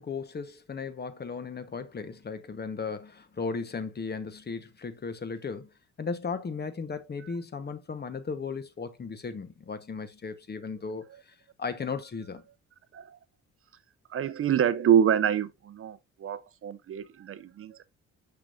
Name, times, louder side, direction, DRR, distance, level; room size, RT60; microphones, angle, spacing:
voice 1, 0.0-12.4, left 5 dB, 35° left, 1.1 m, -36 dB
voice 2, 14.1-17.8, right 9 dB, 45° right, 0.5 m, -26 dB
6.1 x 6.1 x 2.5 m
cardioid pair, 90°, 30 cm